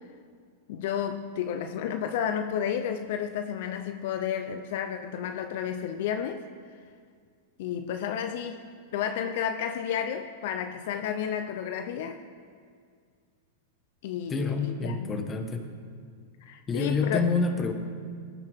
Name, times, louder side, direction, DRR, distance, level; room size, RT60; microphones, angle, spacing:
voice 1, 0.7-6.4 7.6-8.6 8.9-12.2 14.0-14.9 16.4-17.2, left 8 dB, 65° left, 7 dB, 0.7 m, -31 dB
voice 2, 14.3-15.7 16.7-17.7, left 4 dB, 20° left, 5 dB, 1.4 m, -27 dB
19.0 x 9.4 x 3.6 m, 2.1 s
hypercardioid pair, 120°, 0 cm